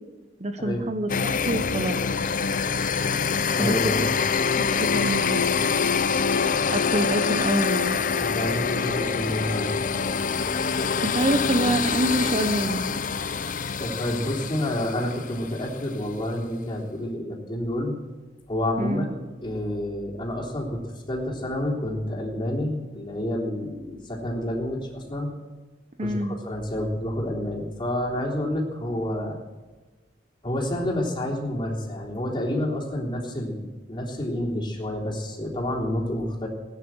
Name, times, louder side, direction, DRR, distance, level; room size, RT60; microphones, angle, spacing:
voice 1, 0.4-1.1 1.5-2.0 3.6-4.1 4.5-5.6 6.7-8.0 11.0-12.8 18.8-19.1 26.0-26.4, right 1 dB, 40° right, 8 dB, 1.0 m, -26 dB
sound 1, 1.1-15.8, left 5 dB, 50° left, 0.7 m, -25 dB
voice 2, 3.6-4.0 8.2-9.8 13.8-17.9 18.5-25.3 26.0-29.4 30.4-36.5, left 1 dB, 30° left, -2 dB, 3.5 m, -29 dB
18.0 x 9.9 x 7.9 m, 1.3 s
head